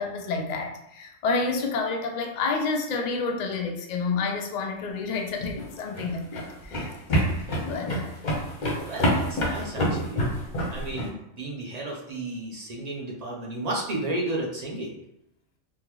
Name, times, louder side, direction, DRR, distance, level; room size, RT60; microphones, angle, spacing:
voice 1, 0.0-6.9 7.7-8.1, left 4 dB, 85° left, 2 dB, 0.3 m, -29 dB
sound 1, 5.4-11.1, equal, 45° left, 0.8 m, -27 dB
voice 2, 8.8-10.3 10.7-14.9, right 2 dB, 45° right, -2 dB, 0.6 m, -33 dB
3.7 x 2.2 x 3.0 m, 0.78 s
omnidirectional pair, 1.3 m